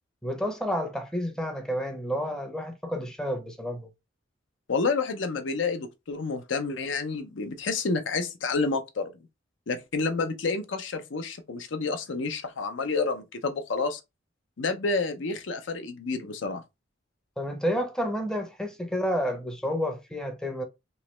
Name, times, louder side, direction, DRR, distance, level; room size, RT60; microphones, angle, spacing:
voice 1, 0.2-3.9 17.4-20.6, equal, 5° left, 0.6 m, -30 dB
voice 2, 4.7-9.1 9.7-14.0 14.6-16.6, left 4 dB, 70° left, 0.6 m, -29 dB
3.1 x 2.9 x 3.1 m
head